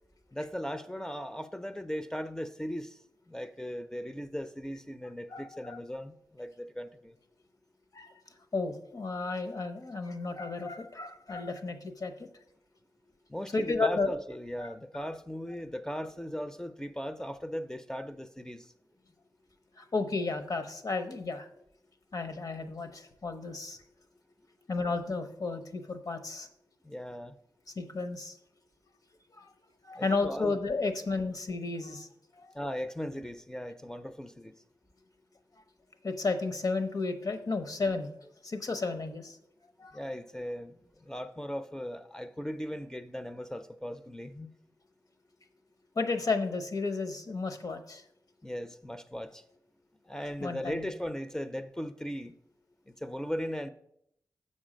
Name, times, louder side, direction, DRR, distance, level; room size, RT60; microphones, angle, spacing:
voice 1, 0.3-3.0 3.3-7.2 13.3-18.7 26.8-27.4 29.9-30.6 32.5-34.5 39.9-44.5 48.4-49.4 50.0-52.3 53.0-53.7, equal, 10° left, 0.4 m, -38 dB
voice 2, 5.3-5.8 7.9-8.1 8.5-12.1 13.5-14.1 14.6-14.7 19.8-21.5 22.1-23.8 24.7-26.5 27.8-28.4 29.4-29.5 29.8-32.1 32.4-32.5 36.0-39.4 39.8-40.0 46.0-48.0 50.4-50.9, left 3 dB, 60° left, 0.9 m, -33 dB
6.9 x 5.4 x 5.0 m
cardioid pair, 65°, 7 cm